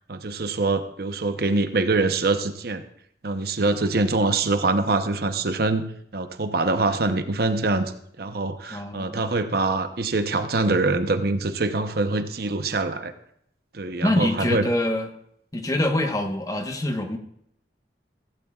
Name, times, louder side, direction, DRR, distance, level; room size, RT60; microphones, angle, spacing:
voice 1, 0.0-2.8 3.2-5.9 6.1-13.1 13.7-14.6, right 3 dB, 60° right, 8 dB, 0.8 m, -24 dB
voice 2, 8.7-9.2 14.0-15.1 15.5-17.2, left 1 dB, 20° left, 5 dB, 1.1 m, -25 dB
16.0 x 16.0 x 2.4 m, 0.71 s
head